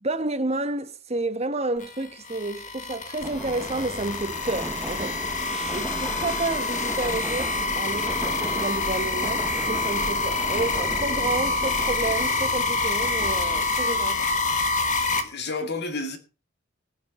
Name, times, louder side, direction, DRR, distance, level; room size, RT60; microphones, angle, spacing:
voice 1, 0.0-14.3, right 2 dB, 35° right, 1.2 m, -30 dB
sound 1, 1.8-15.2, left 3 dB, 40° left, 1.7 m, -27 dB
Subway metro underground, 3.2-15.2, right 1 dB, 5° right, 0.8 m, -36 dB
voice 2, 14.8-16.2, left 3 dB, 55° left, 2.4 m, -32 dB
20.5 x 7.2 x 4.2 m
head